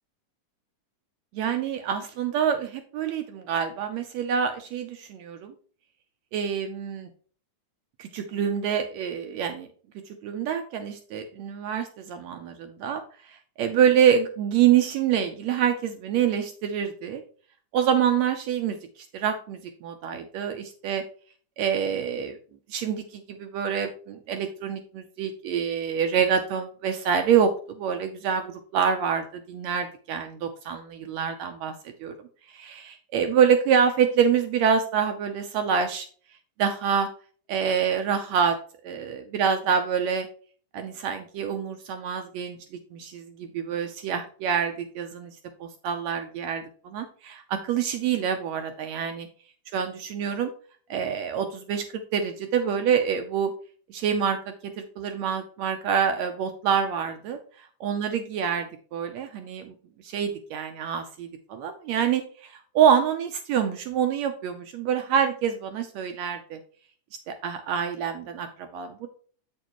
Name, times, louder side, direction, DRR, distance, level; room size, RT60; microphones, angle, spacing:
voice 1, 1.3-5.5 6.3-7.1 8.0-9.7 10.2-17.2 17.7-18.8 19.1-21.0 21.6-22.4 22.7-32.1 32.5-36.0 36.6-37.1 37.5-38.6 38.8-40.3 40.7-49.3 49.7-50.5 50.9-53.5 53.9-57.4 57.8-59.7 60.0-66.6 67.3-69.1, right 8 dB, 75° right, 6 dB, 1.7 m, -26 dB
7.6 x 6.7 x 3.0 m, 0.43 s
omnidirectional pair, 3.6 m